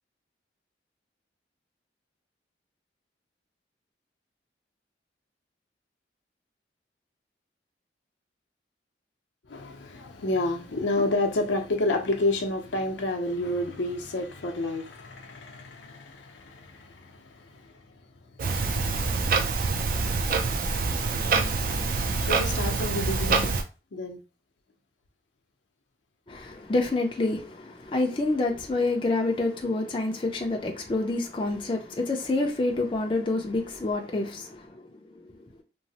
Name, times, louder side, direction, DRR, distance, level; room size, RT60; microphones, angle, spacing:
voice 1, 9.5-18.2 22.2-23.6 23.9-24.2, left 2 dB, 85° left, 0.6 m, -30 dB
Clock, 18.4-23.6, right 4 dB, 50° right, 0.4 m, -26 dB
voice 2, 26.3-35.3, left 2 dB, 30° left, 0.4 m, -28 dB
3.0 x 2.0 x 2.7 m
head